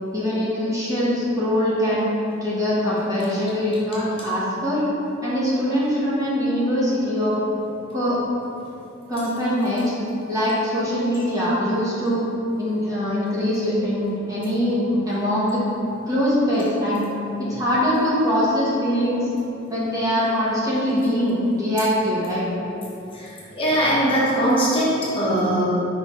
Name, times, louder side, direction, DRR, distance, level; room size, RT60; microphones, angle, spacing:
voice 1, 0.1-2.1 2.4-4.9 5.2-7.3 7.9-8.2 9.1-9.9 10.3-12.2 12.6-15.6 16.1-17.1 17.5-19.3 19.7-22.4, equal, 15° right, -9 dB, 1.2 m, -22 dB
voice 2, 23.1-25.6, right 1 dB, 25° left, -8 dB, 1.2 m, -21 dB
5.6 x 3.9 x 4.3 m, 2.8 s
head